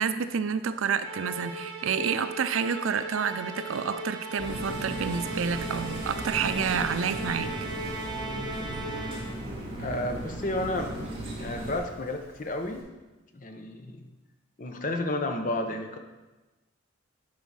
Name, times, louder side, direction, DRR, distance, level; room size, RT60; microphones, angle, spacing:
voice 1, 0.0-7.5, right 6 dB, 85° right, 12 dB, 0.4 m, -29 dB
Musical instrument, 1.0-9.5, right 2 dB, 50° right, 1.9 m, -37 dB
sound 1, 4.4-11.8, right 1 dB, 30° right, 1.5 m, -36 dB
Rain, 6.1-12.8, right 1 dB, 10° left, 2.8 m, -56 dB
voice 2, 9.8-10.9 11.4-12.8 13.3-14.0 14.6-16.0, left 1 dB, 40° left, 5 dB, 0.7 m, -31 dB
10.5 x 4.7 x 4.1 m, 1.1 s
head